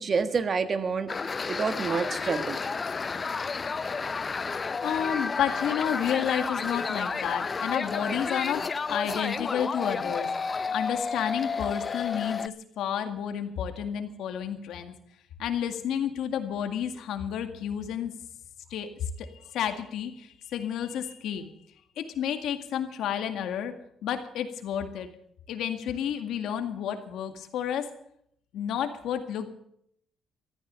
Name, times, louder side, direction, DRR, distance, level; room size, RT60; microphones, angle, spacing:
voice 1, 0.0-2.6, right 5 dB, 45° right, 10 dB, 1.4 m, -28 dB
sound 1, 1.1-12.5, left 4 dB, 35° left, 0.6 m, -31 dB
voice 2, 4.4-8.6 8.9-10.3 10.7-14.9 15.4-18.1 18.7-18.9 19.2-21.5 22.0-23.7 24.0-25.1 25.5-27.9 28.5-29.5, left 9 dB, 80° left, 7 dB, 2.0 m, -31 dB
14.5 x 13.5 x 6.9 m, 0.72 s
cardioid pair, 90°, 0 cm